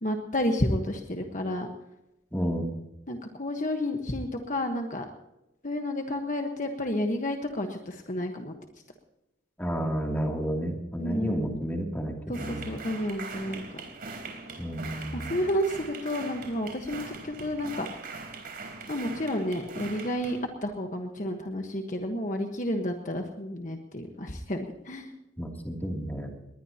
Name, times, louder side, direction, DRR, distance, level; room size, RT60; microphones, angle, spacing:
voice 1, 0.0-1.7 3.1-5.0 5.6-8.5 11.0-11.6 12.3-13.8 15.1-17.9 18.9-25.1, left 1 dB, 40° left, 4 dB, 1.3 m, -31 dB
voice 2, 2.3-2.7 9.6-12.7 14.6-15.3 25.4-26.3, equal, 10° left, 1 dB, 2.8 m, -31 dB
sound 1, 12.3-20.4, right 3 dB, 50° right, 4.1 m, -41 dB
21.0 x 19.5 x 2.9 m, 0.90 s
head